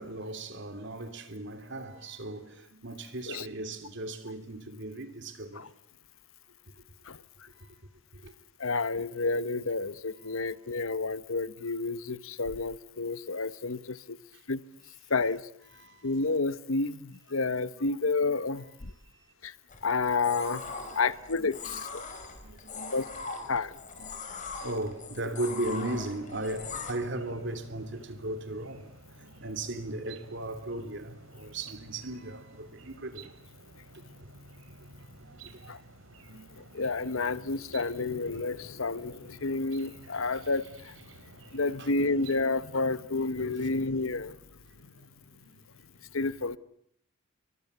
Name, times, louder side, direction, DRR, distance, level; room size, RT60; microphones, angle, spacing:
voice 1, 0.0-5.6 7.6-7.7 8.1-8.3 10.1-10.6 13.0-13.1 15.7-16.1 17.8-17.9 20.5-20.6 20.9-21.0 21.7-21.8 22.4-23.0 24.0-28.8 29.2-33.3 35.2-35.7 36.2-36.4 36.7-36.8 41.2-41.3 41.8-41.9 43.6-43.7 44.7-45.0 45.4-45.5, right 2 dB, 60° right, 3.2 m, -37 dB
voice 2, 8.6-14.2 14.5-14.6 15.1-15.4 16.0-18.6 19.4-19.5 19.8-20.6 21.0-22.0 22.9-23.1 23.5-23.7 35.7-35.8 36.7-40.9 41.5-44.3 46.1-46.6, left 3 dB, 80° left, 1.2 m, -30 dB
sound 1, 19.7-26.9, left 4 dB, 40° left, 5.2 m, -41 dB
sound 2, 26.6-42.5, right 2 dB, 80° right, 3.1 m, -52 dB
29.5 x 24.0 x 8.2 m
head